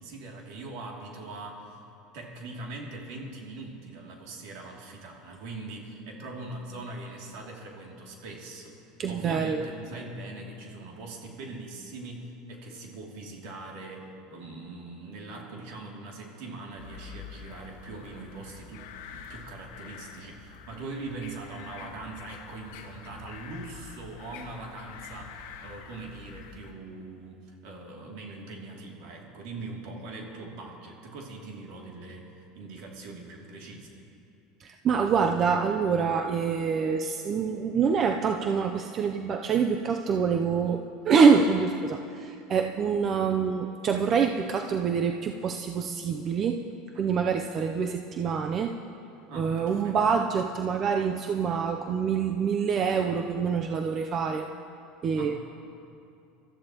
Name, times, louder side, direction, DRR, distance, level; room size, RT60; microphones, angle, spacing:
voice 1, 0.0-1.8 2.1-8.7 9.1-33.9 49.3-50.0 55.1-55.4, right 2 dB, 70° right, -1 dB, 2.7 m, -41 dB
voice 2, 9.0-9.7 34.6-46.6 47.0-48.7 49.3-54.5 55.0-55.4, right 6 dB, 40° right, 5 dB, 0.6 m, -26 dB
sound 1, 16.8-26.7, left 7 dB, 80° left, 1.1 m, -46 dB
23.5 x 13.5 x 3.0 m, 2.7 s
supercardioid pair, 115°, 0 cm